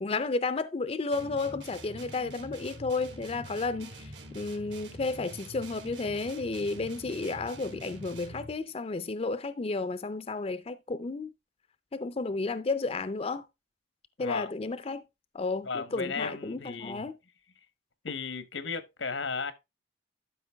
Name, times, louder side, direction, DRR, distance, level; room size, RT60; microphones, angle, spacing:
voice 1, 0.0-11.3 11.9-13.4 14.2-15.0 15.3-17.1, left 3 dB, 35° left, 0.5 m, -32 dB
sound 1, 1.1-8.6, right 1 dB, 70° right, 2.2 m, -45 dB
voice 2, 15.6-17.1 18.0-19.5, left 4 dB, 90° left, 1.1 m, -35 dB
12.0 x 5.1 x 3.4 m
head